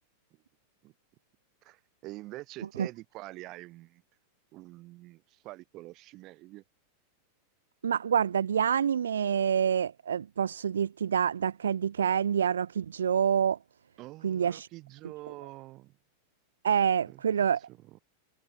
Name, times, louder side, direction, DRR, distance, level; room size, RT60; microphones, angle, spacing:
voice 1, 1.6-4.0 4.5-6.6 14.0-16.0 17.0-17.2 17.7-18.0, right 19 dB, 40° right, 4.2 m, -46 dB
voice 2, 7.8-13.6 14.2-14.7 16.6-17.6, right 8 dB, 65° right, 0.3 m, -27 dB
figure-of-eight pair, 90°, 0 cm